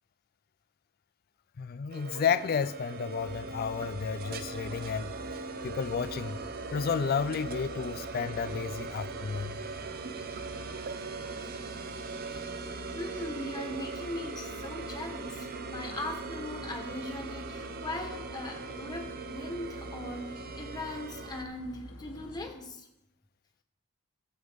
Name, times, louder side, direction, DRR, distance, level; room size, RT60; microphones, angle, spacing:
voice 1, 1.6-5.1 5.6-6.4 6.7-9.6, left 6 dB, 45° left, 0.4 m, -31 dB
sound 1, 1.9-21.4, right 4 dB, 45° right, 0.6 m, -40 dB
sound 2, 3.2-22.5, left 1 dB, 80° left, 1.3 m, -48 dB
voice 2, 12.9-22.9, left 1 dB, 20° left, 1.2 m, -39 dB
14.5 x 7.9 x 3.6 m
head